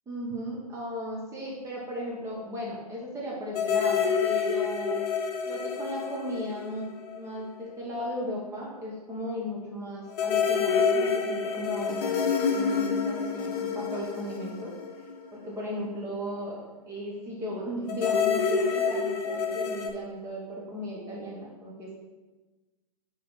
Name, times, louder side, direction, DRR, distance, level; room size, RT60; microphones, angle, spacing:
voice 1, 0.1-5.0 5.4-6.9 7.1-14.7 15.3-16.6 16.9-21.9, equal, 15° right, -4 dB, 1.3 m, -36 dB
sound 1, 3.5-7.3 7.6-7.7 10.1-15.6 17.9-19.9, left 6 dB, 40° left, 0.9 m, -28 dB
7.3 x 3.8 x 4.2 m, 1.2 s
figure-of-eight pair, 120°, 20 cm